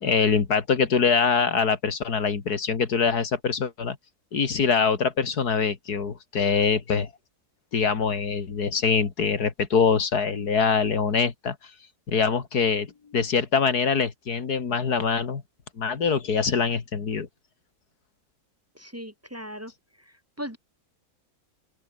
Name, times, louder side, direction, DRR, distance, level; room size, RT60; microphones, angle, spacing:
voice 1, 0.0-4.0 4.3-7.1 7.7-11.6 12.1-15.4 15.8-17.3, left 5 dB, 85° left, 2.6 m, -24 dB
voice 2, 18.7-19.7 20.0-20.6, equal, 10° right, 3.4 m, -38 dB
open air
omnidirectional pair, 1.6 m